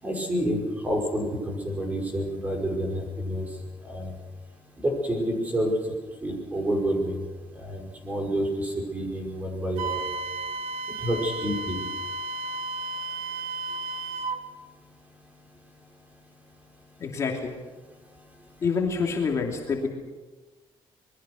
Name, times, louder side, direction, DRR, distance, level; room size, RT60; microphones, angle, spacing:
voice 1, 0.0-3.5 3.8-4.1 4.8-5.7 6.2-7.2 7.6-10.0 11.0-11.8, equal, 15° right, 1 dB, 5.4 m, -28 dB
Wind instrument woodwind instrument, 9.8-14.4, right 3 dB, 90° right, 1.8 m, -33 dB
voice 2, 17.0-17.5 18.6-19.9, left 5 dB, 35° left, 0 dB, 2.7 m, -27 dB
26.5 x 22.0 x 6.4 m, 1.2 s
cardioid pair, 170°, 9 cm